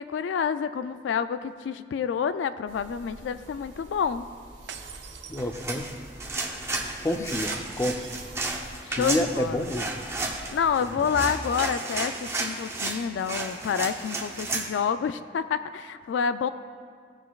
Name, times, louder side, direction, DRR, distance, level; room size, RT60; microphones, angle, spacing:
voice 1, 0.0-4.3 8.8-9.7 10.5-16.5, left 7 dB, 80° left, 12 dB, 0.3 m, -28 dB
sound 1, 2.7-10.8, right 1 dB, 40° right, 1.8 m, -47 dB
sound 2, 4.7-6.0 7.5-8.5 11.6-12.8, right 8 dB, 75° right, 0.5 m, -43 dB
voice 2, 5.3-5.9 7.0-8.0 8.9-10.0, left 1 dB, 15° left, 5 dB, 0.4 m, -29 dB
sound 3, 5.4-14.7, right 2 dB, 15° right, 0.7 m, -33 dB
15.5 x 6.2 x 2.4 m, 2.1 s
head